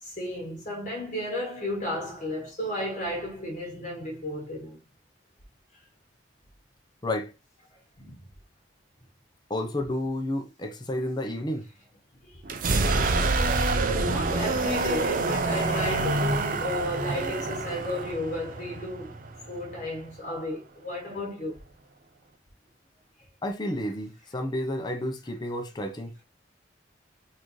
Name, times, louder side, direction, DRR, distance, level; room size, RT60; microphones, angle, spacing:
voice 1, 0.0-4.8 7.7-8.2 12.2-12.4 13.3-13.7 14.0-19.1 19.5-21.6, left 1 dB, 45° left, 1.5 m, -33 dB
voice 2, 9.5-11.6 23.4-26.1, left 1 dB, 25° left, 0.6 m, -31 dB
sound 1, 12.4-20.2, right 3 dB, 50° right, 0.5 m, -27 dB
4.0 x 2.6 x 3.0 m
head